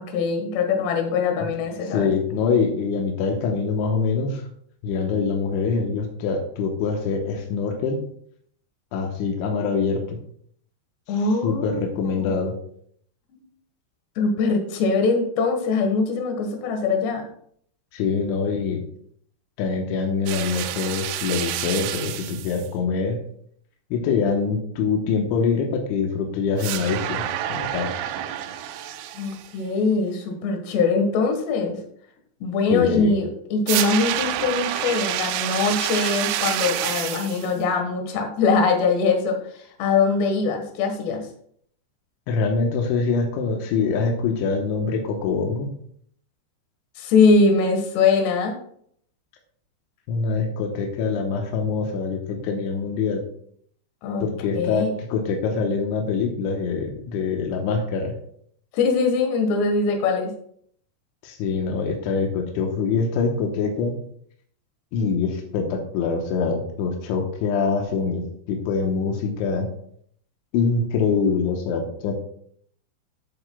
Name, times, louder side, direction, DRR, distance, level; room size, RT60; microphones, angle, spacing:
voice 1, 0.0-2.1 11.1-12.5 13.3-13.4 14.2-17.2 29.1-31.8 32.4-41.2 47.0-48.6 54.0-54.2 54.5-54.9 58.7-60.3, left 4 dB, 75° left, 3 dB, 3.5 m, -22 dB
voice 2, 1.9-4.4 4.8-8.0 8.9-10.2 11.4-12.6 17.9-18.8 19.6-23.2 23.9-27.2 27.5-27.9 32.7-33.2 42.3-45.7 50.1-53.2 54.2-58.2 61.2-64.0 64.9-69.7 70.5-72.1, left 5 dB, 90° left, 2 dB, 3.4 m, -24 dB
sound 1, 20.3-22.7 26.6-29.5 33.7-37.5, right 12 dB, 90° right, 3.1 m, -28 dB
14.0 x 8.0 x 2.3 m, 0.65 s
omnidirectional pair, 5.2 m